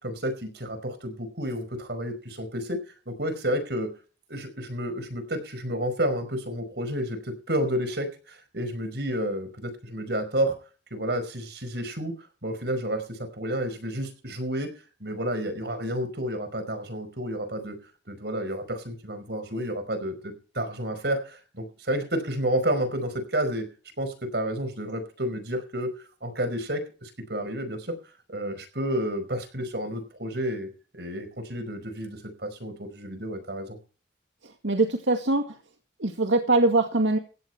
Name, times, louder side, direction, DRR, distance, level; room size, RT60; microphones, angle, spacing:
voice 1, 0.0-2.8 3.1-3.9 4.3-10.5 10.9-12.1 12.4-14.7 15.0-17.8 18.1-23.7 24.0-25.9 26.2-27.9 28.3-33.8, right 1 dB, 60° right, 8 dB, 5.1 m, -30 dB
voice 2, 34.6-35.6 36.0-37.2, right 2 dB, 85° right, 4 dB, 2.0 m, -22 dB
16.0 x 10.5 x 4.5 m, 0.35 s
head